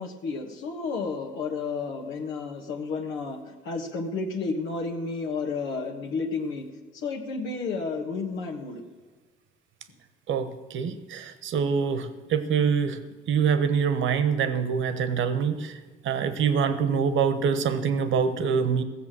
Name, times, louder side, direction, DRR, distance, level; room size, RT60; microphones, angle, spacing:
voice 1, 0.0-6.6 6.9-8.8, left 4 dB, 90° left, 1 dB, 1.4 m, -31 dB
voice 2, 10.3-13.0 13.3-18.8, right 6 dB, 75° right, 11 dB, 1.1 m, -25 dB
15.5 x 7.3 x 7.4 m, 1.3 s
cardioid pair, 90°, 20 cm